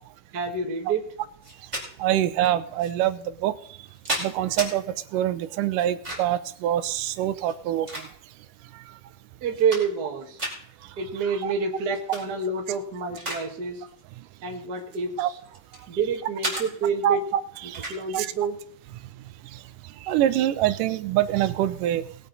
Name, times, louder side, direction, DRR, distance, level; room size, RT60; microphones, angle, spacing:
voice 1, 0.3-1.1 9.4-10.4 11.0-13.8 14.4-15.4 15.9-17.2 17.6-18.6, right 5 dB, 40° right, 2 dB, 1.8 m, -28 dB
sound 1, 1.4-1.9 2.8-2.9 3.6-4.7 5.8-6.4 7.4-8.5 9.0-9.1 9.4-10.1 10.4-10.6 11.9-12.2 12.7-13.5 13.7-14.0 14.8-15.9 16.4-16.7 17.7-18.0, right 1 dB, 10° right, 4.3 m, -33 dB
voice 2, 2.0-3.5 4.2-7.9 11.4-11.5 15.2-15.3 17.0-17.2 17.6-17.8 18.1-18.3 20.0-22.0, right 12 dB, 85° right, 13 dB, 2.3 m, -25 dB
20.0 x 9.0 x 4.1 m, 0.64 s
omnidirectional pair, 3.7 m